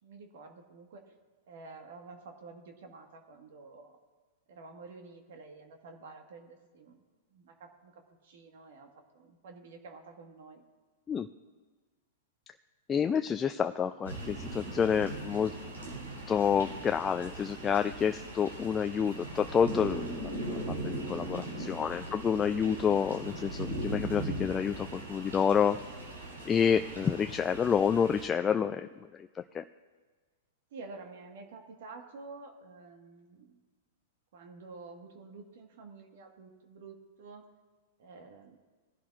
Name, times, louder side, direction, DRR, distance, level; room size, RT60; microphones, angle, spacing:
voice 1, 0.0-1.0 1.5-4.0 4.5-7.0 7.3-8.9 9.1-10.6 30.7-33.6 34.3-37.4 38.0-38.6, right 3 dB, 65° right, 4 dB, 1.6 m, -50 dB
voice 2, 12.9-15.5 16.3-20.6 20.8-25.8 26.5-28.9 29.5-29.6, left 7 dB, 20° left, 8 dB, 0.3 m, -28 dB
sound 1, 14.0-28.2, right 1 dB, 90° right, 3.2 m, -39 dB
19.5 x 11.0 x 2.5 m, 1.4 s
hypercardioid pair, 115°, 0 cm